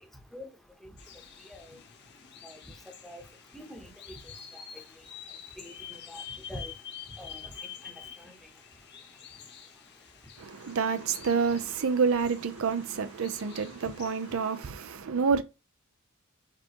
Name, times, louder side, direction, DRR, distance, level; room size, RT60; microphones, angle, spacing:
sound 1, 1.0-14.7, left 8 dB, 50° left, 1.0 m, -48 dB
voice 1, 3.5-4.2 5.6-6.2 6.5-6.7 7.2-7.5 7.8-7.9 8.2-8.3, left 1 dB, ahead, 0.9 m, -44 dB
voice 2, 10.4-15.4, right 5 dB, 70° right, 0.5 m, -28 dB
4.8 x 3.6 x 2.9 m
head